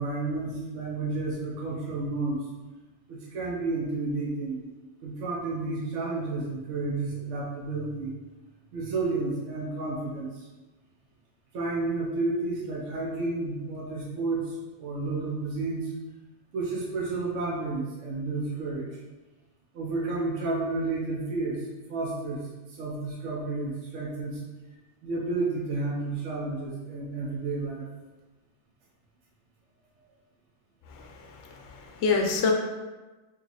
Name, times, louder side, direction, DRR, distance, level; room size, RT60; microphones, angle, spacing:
voice 1, 0.0-2.5 3.1-4.7 5.0-8.1 8.7-10.5 11.5-15.9 16.5-19.0 19.7-24.4 25.0-27.9, right 3 dB, 80° right, -4 dB, 1.0 m, -31 dB
voice 2, 30.9-32.5, left 4 dB, 75° left, 2 dB, 0.9 m, -27 dB
2.9 x 2.8 x 3.9 m, 1.2 s
omnidirectional pair, 1.3 m